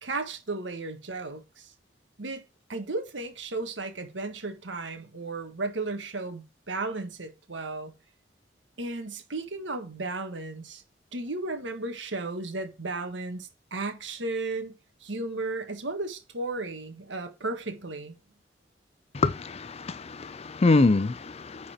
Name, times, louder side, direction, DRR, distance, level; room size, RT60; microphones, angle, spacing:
voice 1, 0.0-1.7 2.2-2.4 2.7-7.9 8.8-10.8 11.1-14.7 15.0-18.2, right 3 dB, 90° right, 1.5 m, -34 dB
voice 2, 19.1-21.7, left 3 dB, 35° left, 0.5 m, -25 dB
10.0 x 4.2 x 4.4 m
head